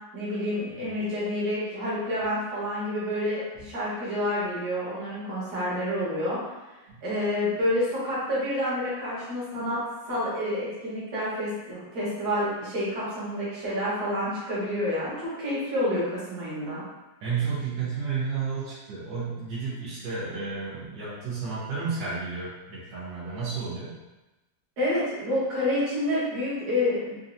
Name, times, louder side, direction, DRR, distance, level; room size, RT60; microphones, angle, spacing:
voice 1, 0.1-6.4 7.0-9.8 10.1-16.8 24.8-27.0, left 1 dB, 60° right, -9 dB, 2.0 m, -28 dB
voice 2, 17.2-23.9, right 5 dB, 85° right, -10 dB, 1.7 m, -32 dB
4.6 x 2.6 x 2.7 m, 1.1 s
omnidirectional pair, 2.0 m